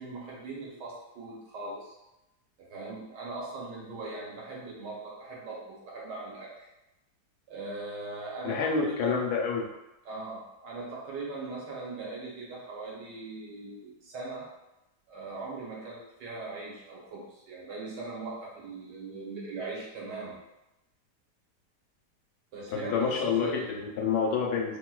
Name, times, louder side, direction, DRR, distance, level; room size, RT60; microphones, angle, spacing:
voice 1, 0.0-2.0 2.6-6.5 7.5-8.7 9.0-9.3 10.0-14.5 15.1-20.4 22.5-23.7, right 3 dB, 90° right, -4 dB, 1.6 m, -40 dB
voice 2, 8.4-9.6 22.7-24.8, left 5 dB, 75° left, 0 dB, 1.1 m, -28 dB
3.7 x 2.6 x 2.3 m, 0.93 s
omnidirectional pair, 1.8 m